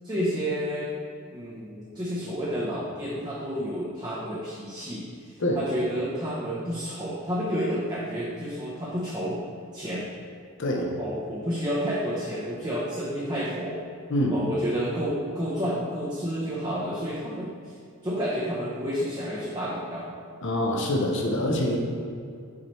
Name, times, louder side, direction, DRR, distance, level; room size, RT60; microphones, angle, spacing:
voice 1, 0.0-0.9 1.3-9.4 9.7-10.1 11.0-13.8 14.3-17.7 18.0-20.1, equal, 20° right, -7 dB, 0.7 m, -30 dB
voice 2, 10.6-10.9 14.1-14.4 20.4-21.8, left 1 dB, 55° left, 0 dB, 0.8 m, -25 dB
5.9 x 5.7 x 3.1 m, 2.3 s
head